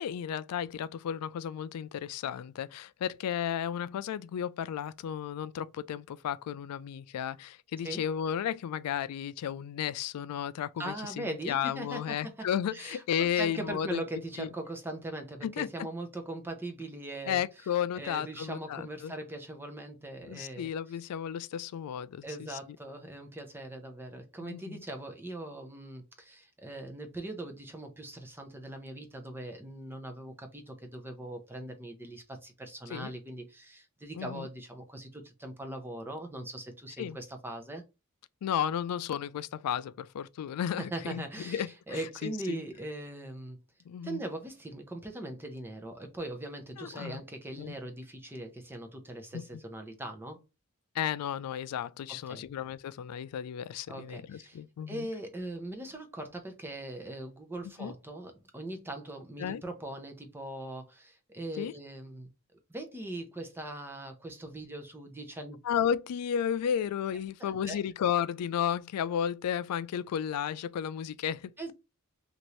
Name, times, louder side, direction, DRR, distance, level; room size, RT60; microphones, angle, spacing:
voice 1, 0.0-14.0 14.4-14.5 15.4-15.7 17.3-19.1 20.3-22.6 24.4-24.8 32.9-33.1 34.1-34.5 37.0-37.2 38.4-42.6 43.9-44.2 46.8-47.2 47.6-47.7 49.3-49.4 50.9-55.1 57.8-57.9 59.4-59.6 61.6-61.7 65.6-71.7, left 9 dB, 90° left, 0.3 m, -33 dB
voice 2, 10.8-17.4 18.0-20.7 22.2-37.8 40.8-43.6 44.0-50.4 52.1-52.4 53.9-54.6 54.9-62.3 62.7-65.6 67.4-67.8 71.6-71.7, right 1 dB, 10° right, 0.5 m, -40 dB
2.8 x 2.5 x 3.1 m
head